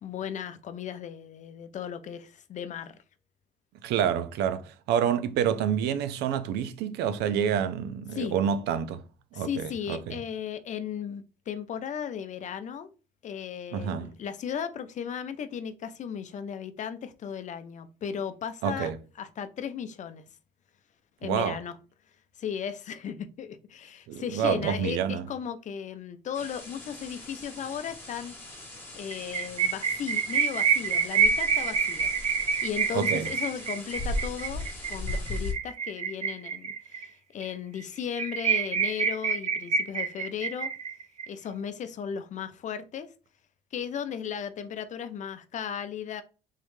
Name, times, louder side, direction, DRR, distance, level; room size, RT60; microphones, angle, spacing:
voice 1, 0.0-3.0 8.1-8.4 9.3-12.9 13.2-18.9 19.2-20.2 21.2-21.8 22.4-28.3 28.9-32.1 32.6-40.7 41.3-43.1 43.7-46.2, left 8 dB, 45° left, 0.6 m, -36 dB
voice 2, 3.8-9.0 9.3-10.2 13.7-14.1 18.6-19.0 21.2-21.6 24.1-25.3 32.9-33.3, right 8 dB, 80° right, 0.5 m, -28 dB
sound 1, 26.3-35.5, left 2 dB, 15° left, 1.8 m, -38 dB
sound 2, 29.1-37.0 37.4-37.5 37.8-37.9 38.1-41.2, right 6 dB, 40° right, 0.6 m, -27 dB
3.6 x 3.2 x 3.2 m
cardioid pair, 110°, 17 cm